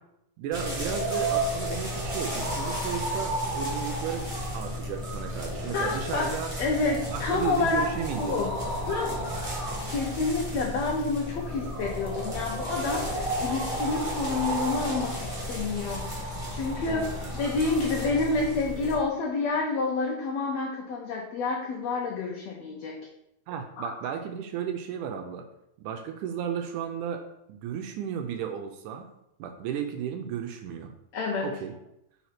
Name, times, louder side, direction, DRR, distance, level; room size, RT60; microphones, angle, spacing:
voice 1, 0.4-4.3 4.5-6.5 7.1-8.4 8.6-9.3 16.9-17.1 23.5-25.5 25.8-27.2 27.5-29.1 29.4-30.9 31.4-31.8, right 8 dB, 80° right, 5 dB, 2.0 m, -34 dB
sound 1, 0.5-19.0, equal, 35° right, 0.5 m, -32 dB
voice 2, 5.7-7.9 8.2-8.5 8.9-9.2 9.9-16.1 16.5-23.0 23.8-24.1 31.1-31.5, left 3 dB, 75° left, 0 dB, 1.6 m, -29 dB
4.9 x 4.1 x 5.7 m, 0.80 s
omnidirectional pair, 3.7 m